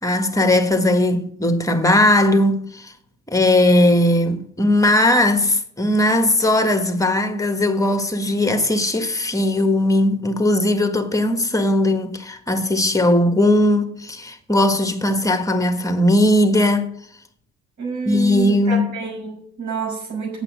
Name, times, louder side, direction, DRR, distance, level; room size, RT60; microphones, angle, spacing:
voice 1, 0.0-2.9 3.3-16.9 18.0-18.8, left 1 dB, 10° left, 1.6 m, -18 dB
voice 2, 17.8-20.4, right 5 dB, 75° right, 5.8 m, -28 dB
8.4 x 7.3 x 8.2 m
cardioid pair, 90°, 30 cm